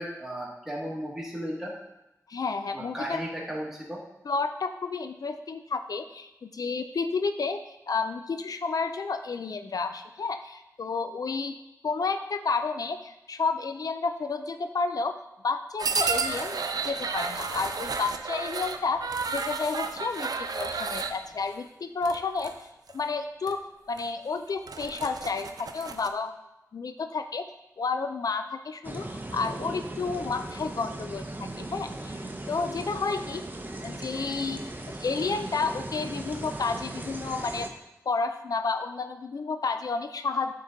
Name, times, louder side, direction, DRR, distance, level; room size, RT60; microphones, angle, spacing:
voice 1, 0.0-1.7 2.7-4.0, equal, 5° right, -4 dB, 1.8 m, -35 dB
voice 2, 2.3-3.2 4.3-7.6 7.9-11.6 11.8-15.2 15.4-22.7 22.9-26.4 26.7-27.4 27.8-33.4 33.8-34.6 34.9-37.7 38.1-40.5, left 4 dB, 75° left, 8 dB, 0.3 m, -31 dB
sound 1, 15.8-21.2 22.0-22.5 22.9-23.1 23.5-23.6 24.0-24.1 24.5-26.1, right 4 dB, 85° right, 0.4 m, -32 dB
sound 2, 28.8-37.7, right 2 dB, 30° right, 0.7 m, -38 dB
8.6 x 3.8 x 3.9 m, 0.92 s
wide cardioid pair, 60°, 6 cm